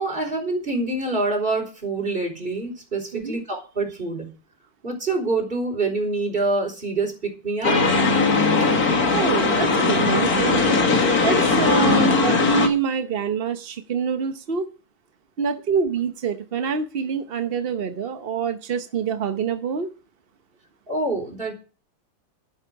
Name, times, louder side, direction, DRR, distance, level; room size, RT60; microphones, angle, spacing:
voice 1, 0.0-4.3 4.8-7.9 20.9-21.5, right 3 dB, 25° right, 2 dB, 4.8 m, -26 dB
sound 1, 7.6-12.7, left 3 dB, 45° left, 2.3 m, -19 dB
voice 2, 9.1-10.8 11.2-14.7 15.4-19.9, right 6 dB, 55° right, 8 dB, 0.6 m, -26 dB
11.5 x 10.5 x 4.6 m, 0.34 s
omnidirectional pair, 2.2 m